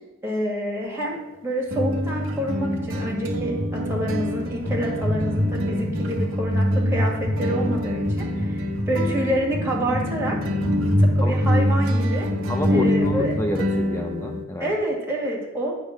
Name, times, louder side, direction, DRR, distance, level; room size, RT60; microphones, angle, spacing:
voice 1, 0.2-10.4 11.0-12.3 12.7-13.3 14.6-15.7, right 1 dB, 10° right, -3 dB, 1.8 m, -28 dB
sound 1, 0.8-0.9 1.7-14.4, equal, 70° right, 1.2 m, -24 dB
voice 2, 12.5-14.7, left 1 dB, 15° left, 5 dB, 0.3 m, -28 dB
8.7 x 3.5 x 6.3 m, 1.1 s
head